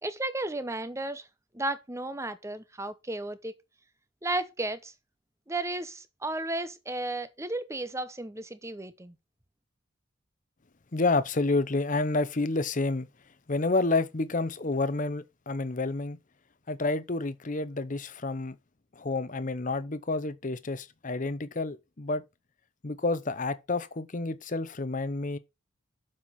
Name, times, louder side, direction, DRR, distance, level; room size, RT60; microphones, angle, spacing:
voice 1, 0.0-1.3 1.5-3.5 4.2-4.9 5.5-9.2, right 2 dB, 15° right, 0.8 m, -34 dB
voice 2, 10.9-13.1 13.5-16.2 16.7-18.6 19.0-22.2 22.8-25.4, left 3 dB, 40° left, 0.8 m, -29 dB
7.3 x 6.0 x 5.7 m
head